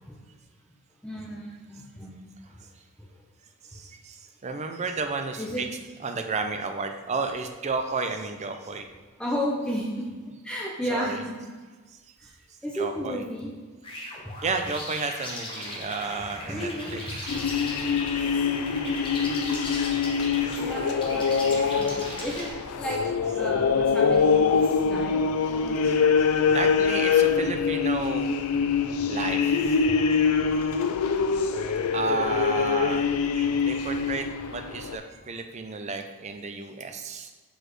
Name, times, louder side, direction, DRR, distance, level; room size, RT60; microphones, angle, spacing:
voice 1, 1.0-2.1 5.4-5.6 9.2-11.3 12.2-12.3 12.6-13.5 16.5-17.2 20.6-23.0 23.3-25.9, equal, 5° left, -4 dB, 0.7 m, -33 dB
voice 2, 3.6-5.7 6.0-8.9 10.9-11.2 12.7-13.2 14.4-17.0 25.8-26.0 26.5-28.3 29.1-29.8 31.9-33.0 33.3-37.3, right 4 dB, 30° right, 5 dB, 0.5 m, -32 dB
sound 1, 13.8-22.5, left 1 dB, 25° left, 1.2 m, -38 dB
sound 2, 17.3-35.0, left 5 dB, 90° left, 0.4 m, -24 dB
6.3 x 4.9 x 3.1 m, 1.4 s
head